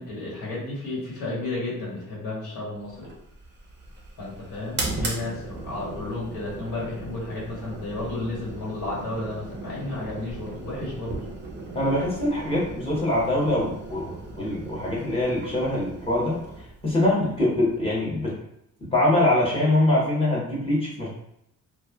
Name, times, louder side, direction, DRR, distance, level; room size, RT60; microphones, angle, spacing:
voice 1, 0.0-3.1 4.2-11.2, left 2 dB, 80° left, -6 dB, 1.3 m, -32 dB
sound 1, 2.9-18.2, right 2 dB, 30° right, 0.5 m, -37 dB
voice 2, 11.7-16.4 16.8-18.3 18.9-21.1, left 1 dB, 15° left, -6 dB, 0.9 m, -23 dB
2.9 x 2.2 x 2.2 m, 0.77 s
wide cardioid pair, 165°, 34 cm